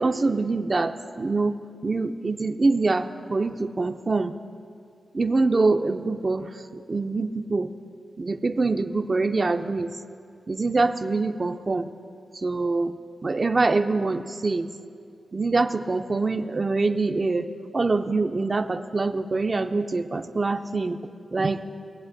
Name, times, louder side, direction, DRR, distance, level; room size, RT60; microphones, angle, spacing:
voice 1, 0.0-1.6 1.8-4.3 5.1-6.5 6.9-7.7 8.2-9.9 10.5-11.9 12.4-12.9 13.2-14.7 15.3-17.5 17.7-21.0 21.3-21.6, right 3 dB, 45° right, 7 dB, 0.5 m, -24 dB
20.5 x 8.0 x 2.6 m, 2.4 s
cardioid pair, 50°, 0 cm